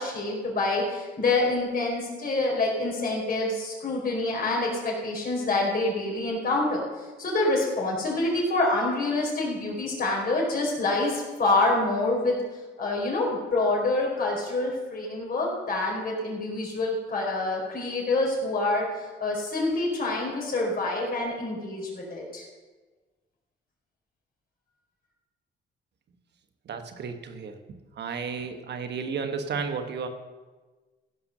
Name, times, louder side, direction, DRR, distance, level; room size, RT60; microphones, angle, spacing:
voice 1, 0.0-6.8 7.2-12.4 12.8-18.8 19.2-22.4, left 2 dB, 45° left, -1 dB, 4.4 m, -26 dB
voice 2, 26.7-27.6 28.0-30.1, right 5 dB, 60° right, 8 dB, 1.3 m, -32 dB
15.5 x 5.8 x 6.6 m, 1.3 s
cardioid pair, 90°, 20 cm